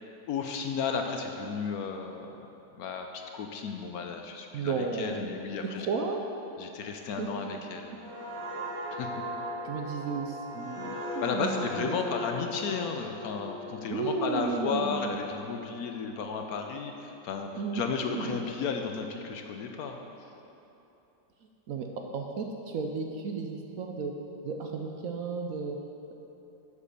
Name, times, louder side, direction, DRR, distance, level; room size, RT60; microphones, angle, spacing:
voice 1, 0.3-2.3 2.8-5.9 6.6-7.9 8.9-9.1 11.2-20.0, left 5 dB, 70° left, 4 dB, 1.0 m, -33 dB
voice 2, 4.5-5.3 5.9-6.3 7.2-7.4 9.6-12.0 13.9-15.1 17.5-18.4 21.7-21.9 22.1-24.1 24.4-25.8, right 4 dB, 65° right, 2 dB, 0.9 m, -33 dB
sound 1, 7.9-15.4 15.8-16.1, left 1 dB, 20° right, 1.8 m, -38 dB
7.4 x 6.6 x 6.6 m, 2.9 s
omnidirectional pair, 1.8 m